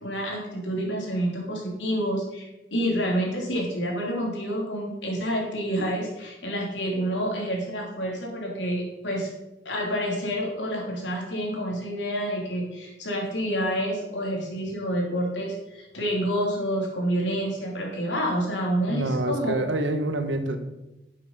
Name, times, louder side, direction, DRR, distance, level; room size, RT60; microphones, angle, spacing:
voice 1, 0.0-9.3 9.6-19.5, equal, 75° left, -1 dB, 3.2 m, -28 dB
voice 2, 18.9-20.6, right 1 dB, 85° right, 8 dB, 1.3 m, -26 dB
9.9 x 7.5 x 5.5 m, 0.96 s
head